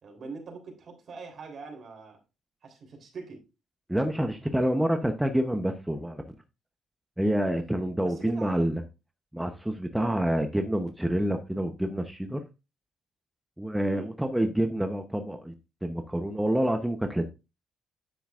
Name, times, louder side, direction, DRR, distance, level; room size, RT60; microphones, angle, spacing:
voice 1, 0.0-2.2 2.6-3.4 8.0-8.7 10.0-10.2 13.9-14.1, right 4 dB, 55° right, 3.6 m, -43 dB
voice 2, 3.9-6.2 7.2-8.8 9.3-12.4 13.6-15.5 15.8-17.2, right 1 dB, 5° right, 0.9 m, -27 dB
9.5 x 7.9 x 2.5 m
cardioid pair, 90°, 0 cm